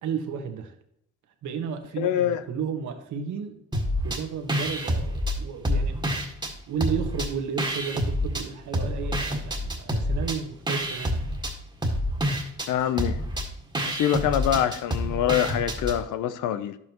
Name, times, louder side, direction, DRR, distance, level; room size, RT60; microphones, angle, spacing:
voice 1, 0.0-0.7 1.4-3.6 4.0-6.2 6.7-11.2 12.8-12.9, right 7 dB, 75° right, 6 dB, 1.4 m, -33 dB
voice 2, 2.0-2.4 12.7-13.2 13.8-16.8, left 10 dB, 80° left, 13 dB, 0.7 m, -25 dB
sound 1, 3.7-4.2 4.5-6.5 6.8-8.4 8.7-16.0, equal, 15° right, 1.7 m, -28 dB
11.0 x 7.5 x 3.0 m, 0.74 s
cardioid pair, 90°, 30 cm